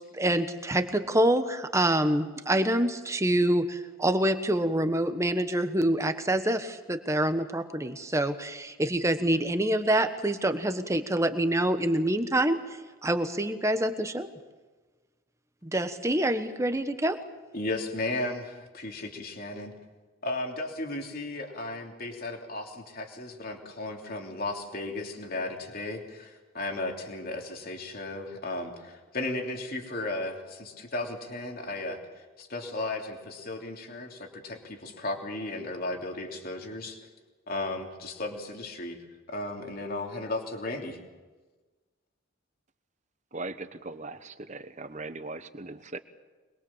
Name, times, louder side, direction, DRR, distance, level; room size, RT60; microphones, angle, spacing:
voice 1, 0.1-12.6 13.0-14.3 15.6-17.2, right 1 dB, 15° right, 9 dB, 1.3 m, -26 dB
voice 2, 17.5-19.7 20.2-32.0 32.4-37.0 37.5-39.0 39.3-41.0, left 2 dB, 45° left, 2 dB, 3.1 m, -35 dB
voice 3, 43.3-46.0, right 2 dB, 35° right, 11 dB, 1.2 m, -39 dB
24.0 x 21.5 x 7.3 m, 1.3 s
head